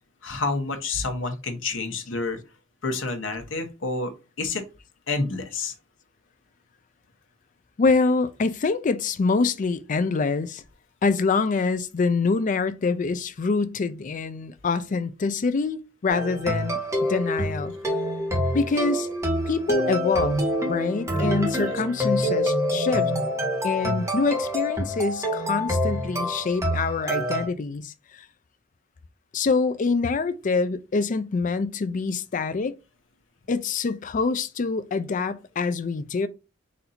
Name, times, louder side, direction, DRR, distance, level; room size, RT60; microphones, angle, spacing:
voice 1, 0.2-2.4 2.8-4.1 4.4-4.6 5.1-5.7 21.6-21.7, left 3 dB, 70° left, 1.0 m, -29 dB
voice 2, 7.8-10.6 11.0-16.8 17.1-17.7 18.5-19.1 19.4-20.4 20.7-23.1 23.6-28.3 29.3-32.7 33.5-36.3, left 4 dB, 40° left, 0.4 m, -25 dB
sound 1, 16.1-27.5, equal, 15° right, 1.0 m, -26 dB
4.2 x 2.6 x 4.1 m
head